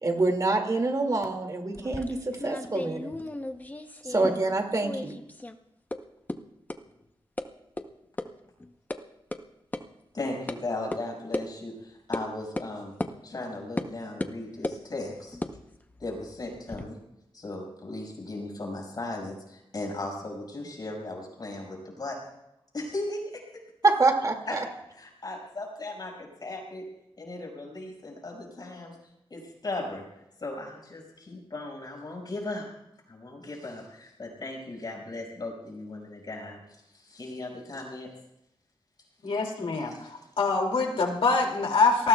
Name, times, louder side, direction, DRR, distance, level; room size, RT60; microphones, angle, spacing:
voice 1, 0.0-3.1 4.0-5.1 23.8-24.6, right 3 dB, 40° right, 4 dB, 2.3 m, -26 dB
sound 1, 1.7-4.6 4.8-5.6 5.9-6.0 6.3-6.4 6.7-6.8 7.4-7.5 7.8-7.9 8.2-8.3 8.6-9.0 9.3-9.4 9.7-9.8 10.5-10.6 10.9-11.0 11.3-11.5 12.1-12.3 12.6-12.7 13.0-13.1 13.8-13.9 14.2-14.8 15.3-16.9, left 2 dB, 20° left, 0.8 m, -35 dB
voice 2, 10.1-12.9 13.2-15.4 16.0-17.0 17.3-22.2 22.7-23.4 24.5-24.6 25.0-26.9 27.2-28.9 29.3-30.0 30.4-32.7 33.1-36.6 36.9-38.1 39.9-40.3, left 2 dB, 45° left, -1 dB, 5.6 m, -37 dB
voice 3, 39.2-42.1, left 4 dB, 80° left, 1 dB, 2.6 m, -24 dB
28.0 x 19.5 x 2.3 m, 0.86 s
wide cardioid pair, 125°, 9 cm